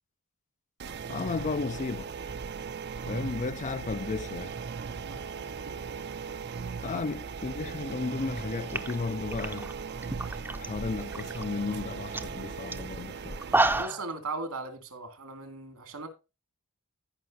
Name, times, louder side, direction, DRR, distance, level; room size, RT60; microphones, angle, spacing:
sound 1, 0.8-13.8, right 5 dB, 50° right, 0.6 m, -38 dB
voice 1, 1.1-2.1 3.1-4.5 6.8-9.7 10.6-13.4, left 4 dB, 35° left, 0.4 m, -34 dB
sound 2, 8.4-8.5 8.7-10.7 11.0-11.4 11.8-11.9 12.1-12.3 12.7-12.8 13.3-14.1, right 2 dB, 10° right, 0.6 m, -29 dB
voice 2, 13.8-16.1, right 3 dB, 80° right, 2.4 m, -38 dB
16.0 x 5.6 x 2.8 m
head